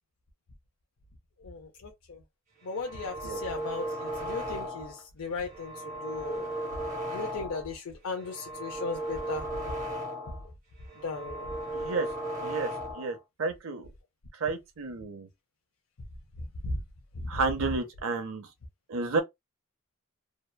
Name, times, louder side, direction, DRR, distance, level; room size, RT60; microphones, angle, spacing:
sound 1, 2.6-5.0 5.4-7.7 8.1-10.5 10.8-13.2, right 1 dB, 35° right, 0.8 m, -36 dB
voice 1, 2.7-5.7 6.0-6.4 7.1-9.4 11.0-11.4 16.6-16.8, left 4 dB, 80° left, 0.5 m, -36 dB
voice 2, 11.7-12.1 12.4-13.9 14.4-15.3 17.3-18.5 18.9-19.2, right 3 dB, 70° right, 0.6 m, -31 dB
2.8 x 2.1 x 2.2 m
head